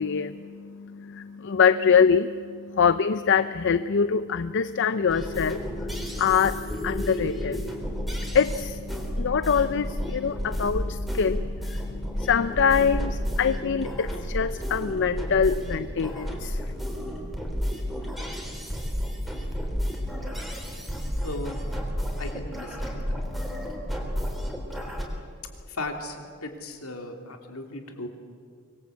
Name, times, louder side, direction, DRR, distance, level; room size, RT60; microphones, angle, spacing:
voice 1, 0.0-16.6, left 6 dB, 55° left, 13 dB, 0.6 m, -25 dB
sound 1, 5.1-25.0, equal, ahead, 3.7 m, -31 dB
voice 2, 21.2-21.6 22.2-23.2 25.7-28.1, left 2 dB, 75° left, 4 dB, 3.1 m, -36 dB
24.5 x 21.0 x 8.3 m, 2.2 s
head